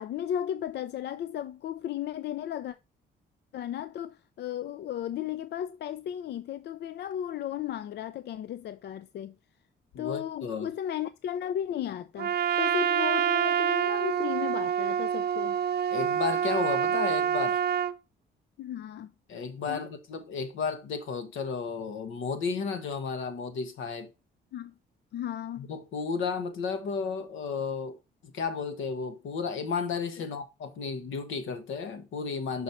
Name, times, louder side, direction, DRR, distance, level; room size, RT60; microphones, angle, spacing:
voice 1, 0.0-2.8 3.5-9.3 10.0-15.6 18.6-19.1 19.7-19.9 24.5-24.7 25.1-25.7 30.2-30.3, left 10 dB, 60° left, 0.4 m, -35 dB
voice 2, 9.9-10.7 15.9-17.6 19.3-24.1 25.6-28.0 28.3-32.6, left 5 dB, 80° left, 1.2 m, -33 dB
Trumpet, 12.2-18.0, right 9 dB, 55° right, 0.6 m, -27 dB
6.1 x 4.2 x 4.2 m
cardioid pair, 90°, 20 cm